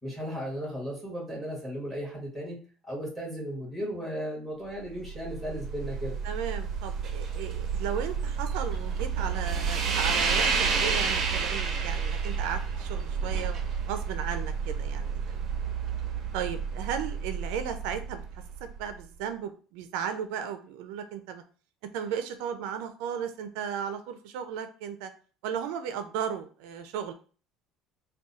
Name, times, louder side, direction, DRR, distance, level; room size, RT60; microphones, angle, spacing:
voice 1, 0.0-2.6 2.8-6.1, equal, ahead, -2 dB, 1.7 m, -35 dB
sound 1, 4.8-19.0, right 5 dB, 35° right, 0.7 m, -30 dB
voice 2, 6.2-13.6 13.9-15.7 16.3-18.2 18.6-21.4 21.9-25.1 25.4-27.1, right 8 dB, 80° right, 9 dB, 0.4 m, -35 dB
3.6 x 2.3 x 4.1 m, 0.39 s
cardioid pair, 150°, 0 cm